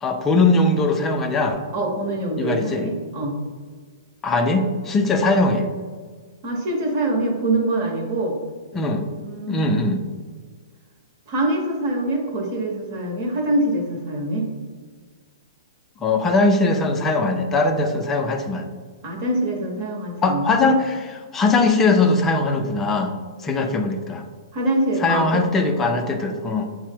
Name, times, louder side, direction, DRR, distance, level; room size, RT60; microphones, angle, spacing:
voice 1, 0.0-1.6 2.4-2.9 4.2-5.7 8.7-9.0 9.5-10.0 16.0-18.7 20.2-21.0 21.3-23.1 23.4-24.2 25.0-26.7, left 3 dB, 10° left, 4 dB, 0.4 m, -20 dB
voice 2, 1.7-3.3 6.4-8.3 9.2-10.0 11.3-14.5 19.0-20.8 24.5-25.4, right 1 dB, 35° right, 0 dB, 0.9 m, -24 dB
5.9 x 2.0 x 4.4 m, 1.5 s
hypercardioid pair, 165°, 2 cm